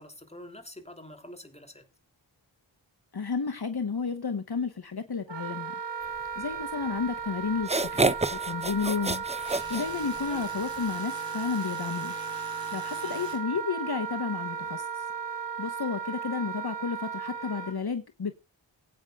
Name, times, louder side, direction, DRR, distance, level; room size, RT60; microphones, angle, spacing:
voice 1, 0.0-1.9 10.3-10.5 13.0-13.2, left 1 dB, 15° left, 2.9 m, -46 dB
voice 2, 3.1-5.7 6.3-12.1 12.7-15.1 15.6-18.4, left 5 dB, 55° left, 1.2 m, -32 dB
Wind instrument woodwind instrument, 5.3-17.7, right 6 dB, 65° right, 2.2 m, -35 dB
sound 1, 7.0-7.1 7.6-10.4, right 2 dB, 15° right, 0.6 m, -28 dB
Tools, 9.3-13.4, right 2 dB, 50° right, 7.8 m, -45 dB
20.5 x 9.1 x 2.4 m
wide cardioid pair, 60°, 45 cm